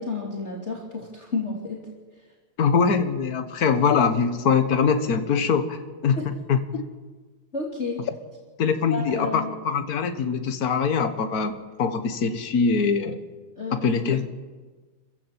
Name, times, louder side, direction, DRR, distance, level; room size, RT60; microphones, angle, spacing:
voice 1, 0.0-1.8 6.2-6.3 7.5-8.0 8.9-9.5 13.6-13.8, left 3 dB, 30° left, -2 dB, 2.9 m, -31 dB
voice 2, 2.6-5.8 6.0-6.8 8.6-11.5 11.8-13.2 13.7-14.3, left 5 dB, 45° left, 8 dB, 1.7 m, -23 dB
27.5 x 15.0 x 7.5 m, 1.4 s
omnidirectional pair, 2.4 m